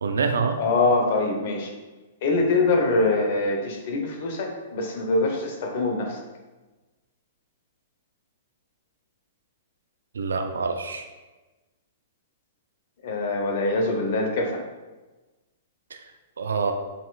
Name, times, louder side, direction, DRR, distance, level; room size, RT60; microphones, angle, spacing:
voice 1, 0.0-0.6 10.1-11.1 15.9-16.0 16.4-16.7, right 5 dB, 80° right, 6 dB, 0.4 m, -26 dB
voice 2, 0.6-1.7 2.2-6.2 13.0-14.6, left 2 dB, 55° left, 2 dB, 0.9 m, -24 dB
5.8 x 3.1 x 2.3 m, 1.2 s
hypercardioid pair, 115°, 0 cm